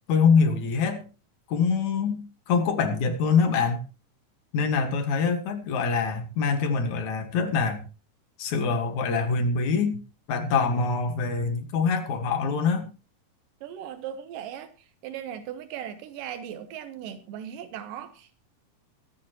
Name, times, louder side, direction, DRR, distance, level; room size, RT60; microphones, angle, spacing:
voice 1, 0.1-1.0 1.5-2.2 2.5-3.8 4.5-7.8 8.4-10.0 10.3-12.9, left 5 dB, 65° left, 7 dB, 2.9 m, -24 dB
voice 2, 13.6-14.7 15.0-18.4, right 9 dB, 85° right, 9 dB, 2.6 m, -38 dB
24.0 x 8.7 x 3.0 m, 0.30 s
omnidirectional pair, 3.8 m